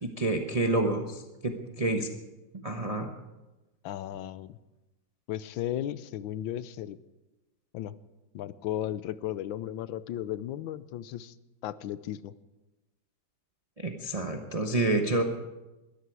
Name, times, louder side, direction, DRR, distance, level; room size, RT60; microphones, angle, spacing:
voice 1, 0.0-2.1 2.5-3.1 13.8-15.2, right 2 dB, 25° right, 3 dB, 0.9 m, -28 dB
voice 2, 3.8-4.6 5.3-7.0 7.7-7.9 8.3-11.3 11.6-12.3, left 12 dB, 85° left, 16 dB, 1.5 m, -35 dB
21.0 x 14.0 x 4.8 m, 1.1 s
omnidirectional pair, 2.1 m